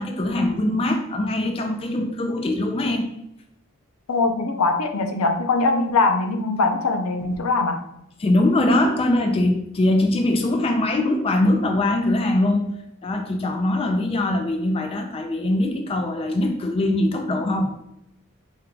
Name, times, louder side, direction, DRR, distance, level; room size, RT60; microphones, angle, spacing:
voice 1, 0.0-3.1 8.2-12.7 13.0-17.7, left 1 dB, 25° left, 5 dB, 0.3 m, -22 dB
voice 2, 4.1-7.8, left 3 dB, 85° left, 5 dB, 0.5 m, -22 dB
4.4 x 2.2 x 3.7 m, 0.78 s
head